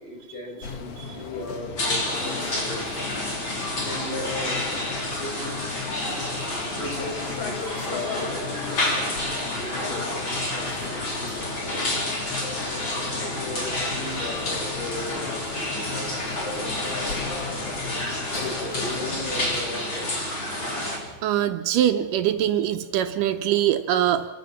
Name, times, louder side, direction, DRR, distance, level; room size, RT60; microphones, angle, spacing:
voice 1, 0.0-3.1 3.8-4.8 5.2-5.6 6.4-17.2 18.1-20.4 21.0-21.1, left 1 dB, 80° left, 0 dB, 6.7 m, -37 dB
sound 1, 0.6-19.6, left 5 dB, 55° left, 1.8 m, -36 dB
sound 2, 1.8-21.0, left 1 dB, 35° left, 4.0 m, -29 dB
voice 2, 20.5-24.3, right 11 dB, 75° right, 8 dB, 2.1 m, -24 dB
27.0 x 14.0 x 7.0 m, 1.3 s
omnidirectional pair, 4.2 m